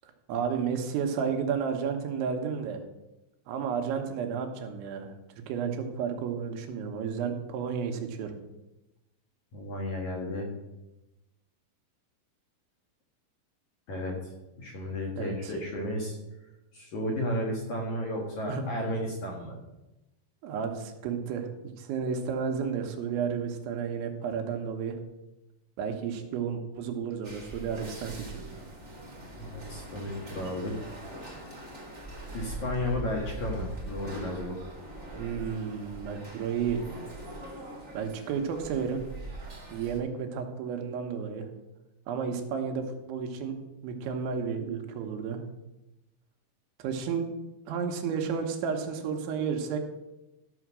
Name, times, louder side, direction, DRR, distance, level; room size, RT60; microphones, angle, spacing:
voice 1, 0.3-2.8 3.5-5.1 5.5-8.4 15.2-15.5 18.5-18.7 20.4-21.5 21.8-25.0 25.8-28.5 35.2-36.8 37.9-39.0 39.7-41.5 42.1-43.6 43.8-45.4 46.8-47.3 47.7-49.8, right 6 dB, 80° right, 4 dB, 3.5 m, -32 dB
voice 2, 9.5-10.5 13.9-14.3 14.6-16.2 16.7-19.6 29.4-30.8 32.3-34.6, left 1 dB, 55° left, -1 dB, 2.3 m, -33 dB
sound 1, 27.2-40.0, right 1 dB, 30° right, 1.3 m, -42 dB
13.5 x 6.4 x 6.1 m, 0.97 s
omnidirectional pair, 5.3 m